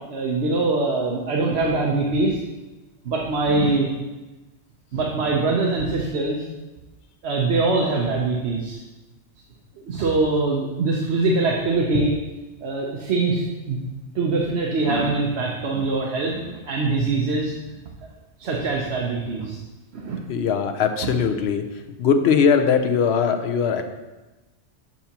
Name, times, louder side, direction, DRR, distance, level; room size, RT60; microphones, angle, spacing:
voice 1, 0.1-2.4 3.0-3.9 4.9-6.4 7.2-8.8 9.8-12.1 12.6-13.8 14.1-17.5 18.4-19.6 19.9-20.2, right 3 dB, 65° right, -2 dB, 1.0 m, -23 dB
voice 2, 20.3-21.6 22.0-23.8, left 6 dB, 65° left, 7 dB, 0.8 m, -20 dB
7.2 x 6.8 x 2.9 m, 1.1 s
omnidirectional pair, 1.2 m